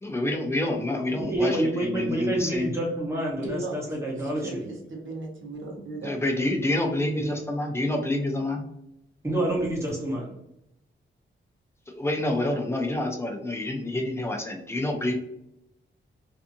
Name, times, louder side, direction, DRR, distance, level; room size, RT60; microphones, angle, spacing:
voice 1, 0.0-2.7 6.0-8.6 11.9-15.1, left 1 dB, 15° left, 3 dB, 0.4 m, -28 dB
voice 2, 1.1-4.6 9.2-10.3, right 1 dB, 15° right, -2 dB, 0.8 m, -27 dB
voice 3, 3.4-3.8 4.1-6.1, right 3 dB, 70° right, 0 dB, 0.8 m, -37 dB
2.6 x 2.5 x 2.5 m, 0.82 s
wide cardioid pair, 180°, 21 cm